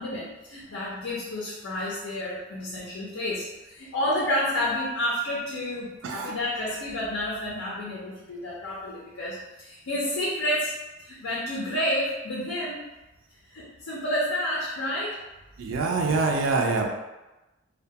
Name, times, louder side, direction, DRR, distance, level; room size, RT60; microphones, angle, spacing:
voice 1, 0.0-12.8 13.5-15.2, left 1 dB, 90° left, -6 dB, 0.5 m, -30 dB
voice 2, 15.6-16.9, right 3 dB, 80° right, 1 dB, 0.4 m, -25 dB
2.2 x 2.2 x 2.7 m, 1.0 s
head